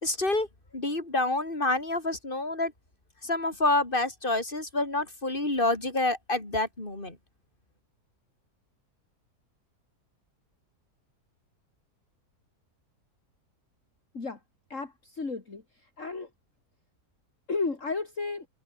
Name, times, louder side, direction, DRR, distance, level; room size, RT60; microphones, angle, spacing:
voice 1, 0.0-0.5 0.7-2.7 3.2-7.2, left 2 dB, 30° left, 4.9 m, -28 dB
voice 2, 14.7-16.3 17.5-18.5, left 4 dB, 50° left, 3.3 m, -33 dB
omnidirectional pair, 1.7 m